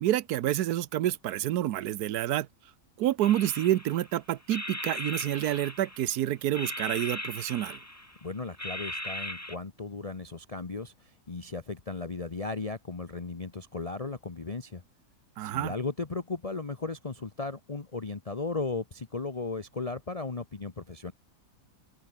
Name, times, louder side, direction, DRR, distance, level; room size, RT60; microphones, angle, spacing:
voice 1, 0.0-2.5 3.0-7.8 15.4-15.7, right 13 dB, 85° right, 1.3 m, -28 dB
sound 1, 3.2-4.1 4.5-6.1 6.5-8.2 8.6-9.6, left 1 dB, 10° left, 2.8 m, -38 dB
voice 2, 8.2-14.8 15.4-21.1, left 3 dB, 25° left, 1.1 m, -36 dB
open air
omnidirectional pair, 1.6 m